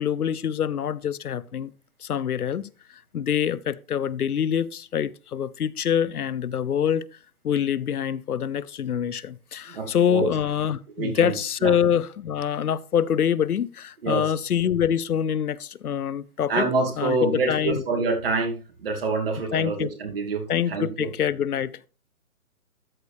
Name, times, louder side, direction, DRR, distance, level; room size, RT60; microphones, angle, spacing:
voice 1, 0.0-1.7 2.0-2.7 3.1-7.1 7.4-16.7 17.0-17.8 19.5-19.9 20.5-21.9, left 9 dB, 85° left, 0.7 m, -25 dB
voice 2, 9.7-10.3 11.0-11.3 11.6-11.7 14.0-14.3 16.5-21.1, right 3 dB, 40° right, 2.6 m, -27 dB
13.0 x 6.6 x 3.4 m
hypercardioid pair, 160°, 44 cm